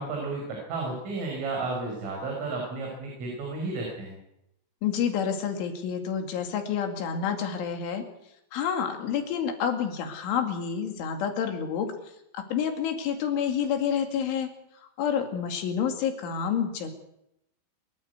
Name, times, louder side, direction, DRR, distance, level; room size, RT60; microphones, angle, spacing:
voice 1, 0.0-4.2, right 3 dB, 85° right, 0 dB, 7.9 m, -32 dB
voice 2, 4.8-8.0 8.5-11.9 12.3-14.5 15.0-16.9, left 7 dB, 75° left, 5 dB, 4.8 m, -28 dB
27.0 x 14.0 x 8.1 m, 0.83 s
omnidirectional pair, 5.6 m